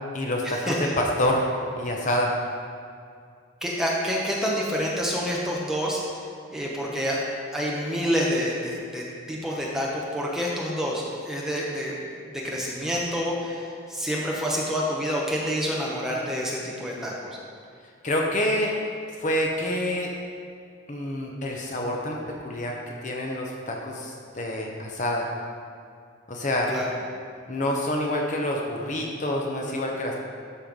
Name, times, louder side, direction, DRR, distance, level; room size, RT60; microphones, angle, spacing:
voice 1, 0.1-1.5 1.8-2.3 18.0-18.7 19.2-20.1 20.9-22.2 22.4-22.8 23.0-25.3 26.3-26.7 27.5-30.2, left 1 dB, 35° left, 0 dB, 0.8 m, -27 dB
voice 2, 3.6-6.0 6.5-7.2 7.5-12.0 12.3-17.4 26.7-26.8, equal, ahead, -4 dB, 1.1 m, -28 dB
12.5 x 4.5 x 5.2 m, 2.3 s
head